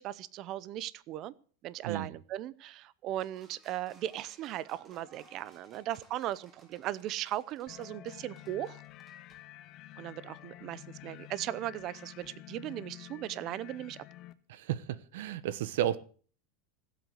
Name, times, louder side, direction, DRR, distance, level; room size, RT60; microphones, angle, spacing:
voice 1, 0.0-1.3 1.6-8.8 10.0-14.0, right 13 dB, 35° right, 0.7 m, -38 dB
sound 1, 3.2-9.4, right 3 dB, 20° right, 3.5 m, -61 dB
sound 2, 7.7-14.3, left 15 dB, 35° left, 0.9 m, -50 dB
voice 2, 14.5-16.0, right 11 dB, 75° right, 1.2 m, -33 dB
16.0 x 8.1 x 8.0 m
supercardioid pair, 155°, 0 cm